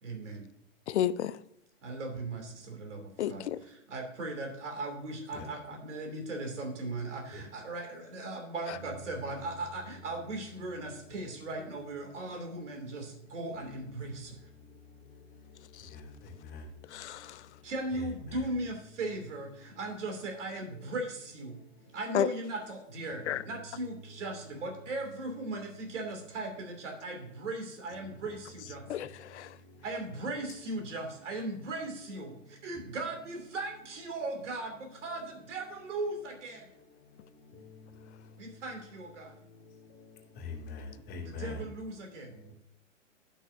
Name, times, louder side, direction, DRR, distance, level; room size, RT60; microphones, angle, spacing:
voice 1, 0.0-0.5 1.8-14.4 17.6-21.6 21.9-29.1 29.8-36.7 38.4-39.4 41.2-42.4, right 2 dB, 65° right, 3.0 m, -38 dB
voice 2, 0.9-1.4 3.2-3.6 16.9-17.4 22.1-22.3 23.3-23.4 28.9-29.5, left 11 dB, 60° left, 0.7 m, -31 dB
voice 3, 40.4-41.6, left 4 dB, 25° left, 2.7 m, -40 dB
17.0 x 6.3 x 2.7 m
figure-of-eight pair, 115°, 39 cm